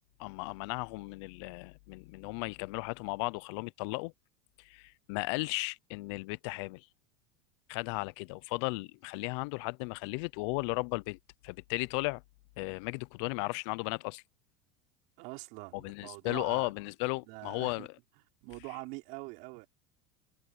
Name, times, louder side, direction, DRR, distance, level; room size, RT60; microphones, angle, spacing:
voice 1, 0.2-4.1 4.6-6.9 7.7-11.2 11.4-12.2 12.6-14.2 15.8-17.9, left 27 dB, 65° left, 0.7 m, -35 dB
voice 2, 15.2-16.7 17.2-17.9 18.4-19.7, right 27 dB, 65° right, 4.8 m, -44 dB
supercardioid pair, 105°, 15 cm